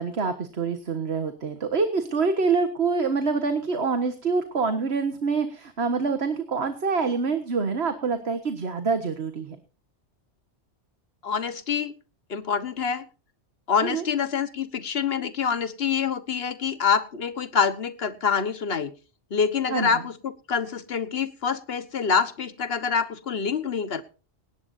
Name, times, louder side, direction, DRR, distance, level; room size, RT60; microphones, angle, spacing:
voice 1, 0.0-9.6 13.8-14.0 19.7-19.9, right 4 dB, 65° right, 7 dB, 1.7 m, -26 dB
voice 2, 11.2-11.9 12.3-13.0 13.7-18.9 19.3-24.0, left 6 dB, 60° left, 12 dB, 1.5 m, -26 dB
19.0 x 18.0 x 2.7 m, 0.36 s
omnidirectional pair, 1.2 m